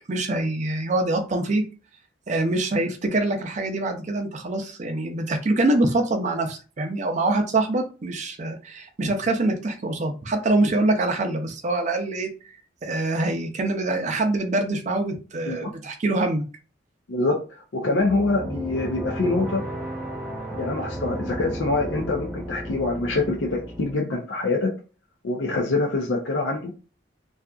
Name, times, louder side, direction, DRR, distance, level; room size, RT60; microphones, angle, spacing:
voice 1, 0.1-1.6 2.3-12.3 12.8-16.4, right 2 dB, 40° right, 4 dB, 0.5 m, -24 dB
voice 2, 17.1-17.4 17.7-19.6 20.6-24.7 25.2-26.7, left 3 dB, 70° left, 0 dB, 0.5 m, -25 dB
sound 1, 18.0-23.9, right 1 dB, 5° left, 0.6 m, -33 dB
2.6 x 2.4 x 2.3 m, 0.34 s
head